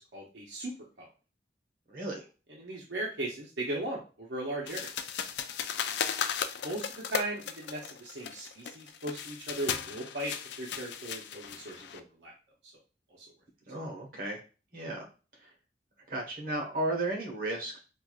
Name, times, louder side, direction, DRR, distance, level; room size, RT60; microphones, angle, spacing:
voice 1, 0.1-1.1 2.5-4.9 6.6-12.3 13.1-13.3, right 1 dB, 80° right, -2 dB, 0.8 m, -38 dB
voice 2, 1.9-2.2 5.9-6.0 13.7-14.4 14.7-15.1 15.4-15.5 16.1-17.8, right 2 dB, 50° right, 1 dB, 1.1 m, -34 dB
sound 1, 4.7-12.0, left 8 dB, 75° left, 0.4 m, -36 dB
4.6 x 2.5 x 2.4 m, 0.33 s
head